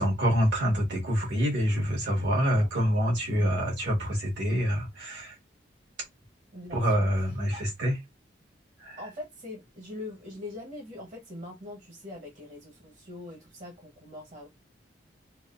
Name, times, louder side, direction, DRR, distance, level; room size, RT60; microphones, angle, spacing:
voice 1, 0.0-5.4 6.7-7.9 8.8-9.0, equal, 75° right, 1.9 m, -26 dB
voice 2, 2.6-3.0 3.4-3.7 6.5-7.1 7.5-7.6 9.0-14.5, left 2 dB, 40° right, 1.0 m, -42 dB
3.9 x 2.4 x 2.5 m
head